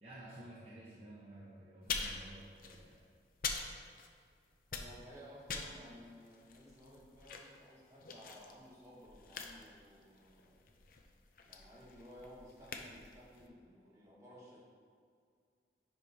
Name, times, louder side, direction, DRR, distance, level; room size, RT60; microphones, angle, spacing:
voice 1, 0.0-3.0, right 1 dB, 35° right, -8 dB, 1.0 m, -53 dB
sound 1, 1.8-4.3 4.6-13.5, left 5 dB, 50° left, 0.5 m, -45 dB
voice 2, 4.7-10.7 11.4-14.6, equal, 20° right, -7 dB, 1.5 m, -56 dB
10.0 x 4.8 x 2.8 m, 2.2 s
head